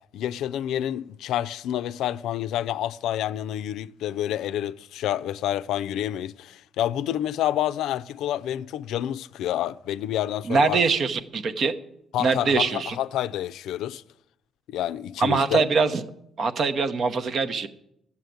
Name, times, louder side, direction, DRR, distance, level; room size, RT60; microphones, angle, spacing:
voice 1, 0.1-10.8 12.1-14.0 14.7-15.6, left 12 dB, 85° left, 0.4 m, -28 dB
voice 2, 10.5-11.7 12.2-13.0 15.2-16.0 16.4-17.7, right 4 dB, 55° right, 1.0 m, -23 dB
13.0 x 7.3 x 9.3 m
cardioid pair, 90°, 0 cm